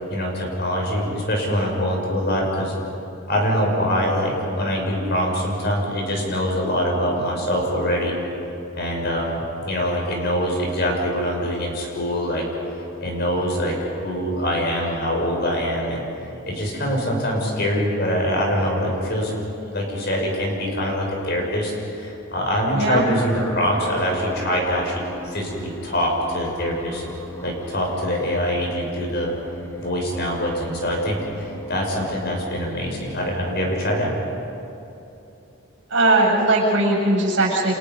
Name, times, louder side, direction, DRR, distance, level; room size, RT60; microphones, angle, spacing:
voice 1, 0.1-2.7 3.3-8.2 8.8-12.5 13.0-13.8 14.0-16.0 16.5-19.3 19.6-27.0 27.4-29.3 29.8-34.1, equal, 50° left, 0 dB, 6.1 m, -24 dB
voice 2, 22.7-23.1 35.9-37.7, right 2 dB, 60° right, -1 dB, 7.6 m, -19 dB
sound 1, 22.8-34.2, equal, 10° left, 1.7 m, -38 dB
30.0 x 27.5 x 5.4 m, 2.9 s
head